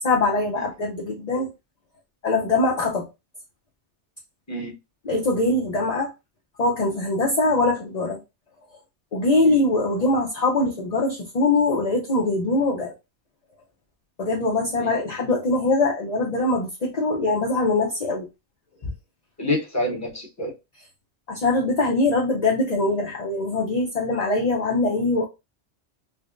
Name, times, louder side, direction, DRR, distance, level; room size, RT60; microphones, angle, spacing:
voice 1, 0.0-1.5 2.2-3.1 5.1-6.1 6.6-8.2 9.1-12.9 14.2-18.3 18.8-18.9 21.3-25.2, left 2 dB, 45° left, 0.7 m, -22 dB
voice 2, 19.4-20.5, left 1 dB, 15° left, 1.0 m, -27 dB
5.0 x 2.1 x 2.4 m
omnidirectional pair, 1.2 m